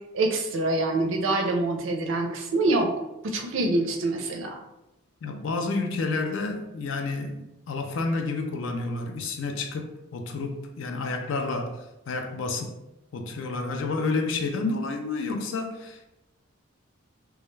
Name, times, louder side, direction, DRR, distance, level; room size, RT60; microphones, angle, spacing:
voice 1, 0.1-2.9 3.2-4.6, right 2 dB, 65° right, 3 dB, 0.4 m, -25 dB
voice 2, 5.2-12.8 13.1-16.1, left 3 dB, 65° left, 4 dB, 0.3 m, -30 dB
2.2 x 2.1 x 3.1 m, 0.93 s
head